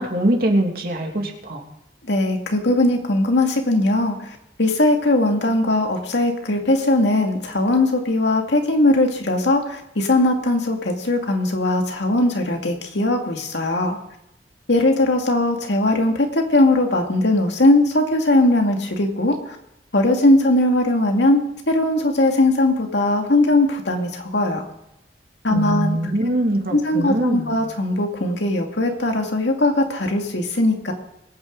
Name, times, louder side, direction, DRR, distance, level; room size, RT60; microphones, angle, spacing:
voice 1, 0.0-1.6 25.5-27.5, right 1 dB, 55° right, 1 dB, 2.6 m, -22 dB
voice 2, 2.0-4.3 4.6-14.0 14.7-19.6 19.9-24.7 25.4-26.0 26.7-30.9, left 1 dB, 85° left, 3 dB, 2.3 m, -19 dB
22.0 x 9.4 x 3.9 m, 0.84 s
head